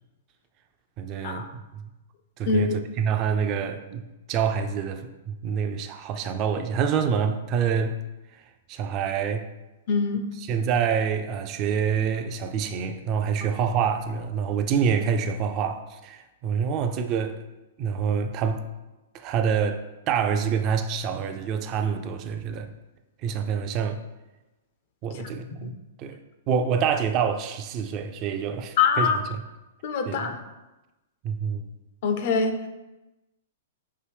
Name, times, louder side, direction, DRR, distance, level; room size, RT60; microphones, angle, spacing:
voice 1, 1.0-1.8 2.4-8.0 8.3-8.4 8.7-9.5 10.4-17.4 17.8-18.6 19.1-22.7 23.2-24.0 25.0-26.2 26.5-29.4 30.1-30.3 31.2-31.7, right 7 dB, 35° right, 0.4 m, -27 dB
voice 2, 2.5-2.8 9.9-10.2 25.1-25.2 25.6-25.7 28.8-29.2 29.8-30.4 32.0-32.7, left 5 dB, 55° left, 0.5 m, -24 dB
4.7 x 2.6 x 3.3 m
hypercardioid pair, 120°, 0 cm